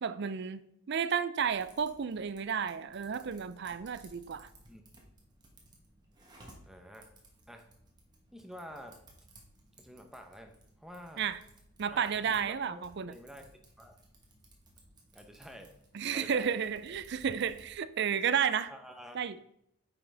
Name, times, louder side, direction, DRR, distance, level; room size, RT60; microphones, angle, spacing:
voice 1, 0.0-4.5 11.2-11.4 11.8-13.1 15.9-18.7 19.1-19.4, right 7 dB, 50° right, 0.4 m, -32 dB
Typing, 1.5-17.7, right 1 dB, 20° right, 1.2 m, -59 dB
voice 2, 6.7-7.1 7.5-7.6 8.3-9.0 9.8-11.2 11.9-13.4 13.8-14.0 15.1-15.7 16.1-16.6 18.7-19.2, equal, ahead, 0.8 m, -49 dB
8.9 x 5.8 x 3.4 m
head